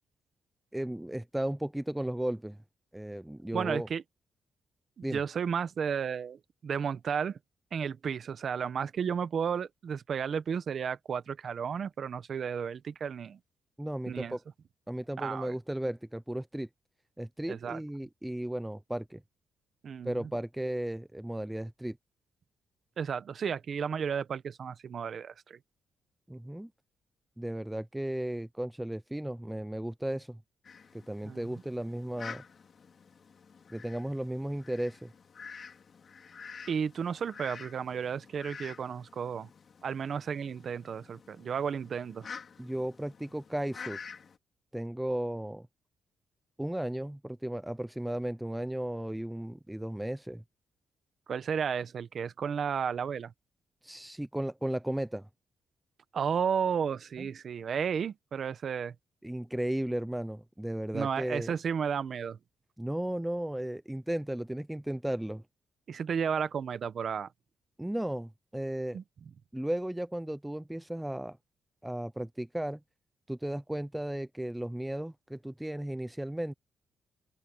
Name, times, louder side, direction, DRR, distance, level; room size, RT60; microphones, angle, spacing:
voice 1, 0.7-2.6 2.9-3.9 5.0-5.2 13.8-14.4 14.9-16.7 17.2-19.2 20.0-22.0 26.3-26.7 27.4-30.4 30.9-32.4 33.7-35.1 42.6-44.0 44.7-45.7 46.6-50.4 53.8-55.3 57.2-57.3 59.2-61.5 62.8-65.4 67.8-69.0 69.5-71.4 71.8-72.8 73.3-76.5, right 1 dB, 5° right, 0.4 m, -35 dB
voice 2, 3.5-4.0 5.0-7.4 7.7-13.4 14.1-14.4 15.2-15.5 17.5-17.8 19.8-20.3 23.0-25.6 31.2-31.4 36.7-39.5 39.8-42.3 51.3-53.3 56.1-58.9 60.9-62.4 65.9-67.3 68.9-69.0, right 7 dB, 45° right, 1.1 m, -33 dB
Fowl, 30.6-44.4, left 6 dB, 40° left, 3.3 m, -49 dB
open air
cardioid pair, 155°, 0 cm